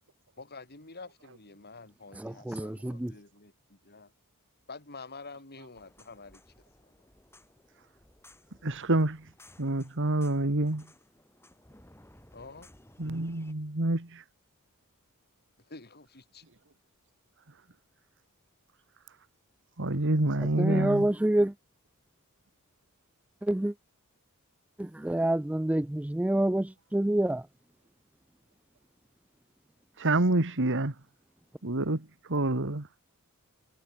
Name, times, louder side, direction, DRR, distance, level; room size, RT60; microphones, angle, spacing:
voice 1, 0.4-4.1 4.7-6.5 6.8-6.9 12.3-12.8 15.6-16.4, left 3 dB, 45° left, 6.5 m, -48 dB
voice 2, 2.2-3.1 20.4-21.5 23.4-23.7 24.8-27.5, right 1 dB, 5° right, 0.3 m, -27 dB
sound 1, 5.8-13.5, left 1 dB, 10° left, 6.8 m, -58 dB
voice 3, 8.6-9.3 9.6-10.9 13.0-14.0 19.8-21.1 30.0-30.9 31.6-32.9, right 2 dB, 60° right, 2.1 m, -27 dB
head